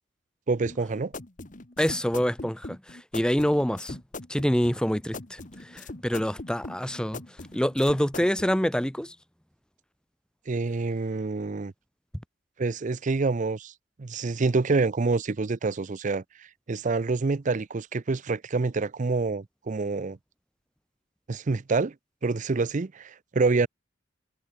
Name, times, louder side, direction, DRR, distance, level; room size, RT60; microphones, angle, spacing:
voice 1, 0.5-1.1 10.5-11.7 12.6-13.7 14.0-20.2 21.3-21.9 22.2-23.7, right 3 dB, 40° right, 0.5 m, -27 dB
sound 1, 0.6-8.5, left 2 dB, 45° left, 1.6 m, -41 dB
voice 2, 1.8-4.0 4.3-7.2 7.5-9.1, equal, 5° left, 1.3 m, -26 dB
head